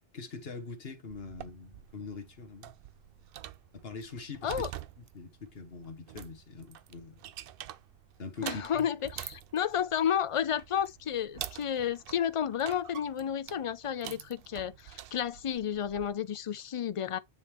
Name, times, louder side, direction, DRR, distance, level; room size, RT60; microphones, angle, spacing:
voice 1, 0.1-2.7 3.7-4.6 5.0-7.2 8.2-8.9, left 4 dB, 70° left, 1.5 m, -43 dB
sound 1, 1.1-16.1, right 11 dB, 65° right, 0.7 m, -46 dB
voice 2, 8.4-17.2, left 9 dB, 50° left, 0.4 m, -31 dB
9.5 x 3.7 x 3.0 m
omnidirectional pair, 1.1 m